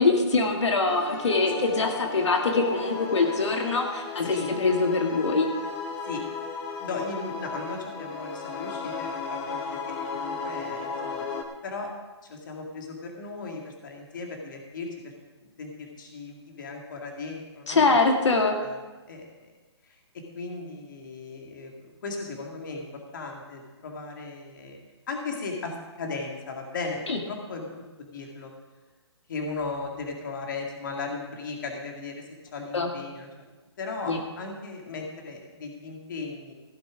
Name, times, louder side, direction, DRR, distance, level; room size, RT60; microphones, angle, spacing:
voice 1, 0.0-5.5 17.7-18.6 27.1-27.2 32.7-32.9 34.1-34.2, left 3 dB, 80° left, 3 dB, 2.0 m, -23 dB
sound 1, 0.9-11.4, left 4 dB, 10° left, 0.7 m, -35 dB
voice 2, 6.8-9.6 9.9-11.3 11.6-11.9 12.2-15.1 15.4-17.8 18.3-18.8 19.1-19.5 19.9-24.8 25.1-28.5 29.3-32.2 32.5-33.3 33.8-36.5, left 3 dB, 45° left, 1 dB, 2.3 m, -37 dB
16.0 x 7.9 x 5.0 m, 1.2 s
hypercardioid pair, 170°, 15 cm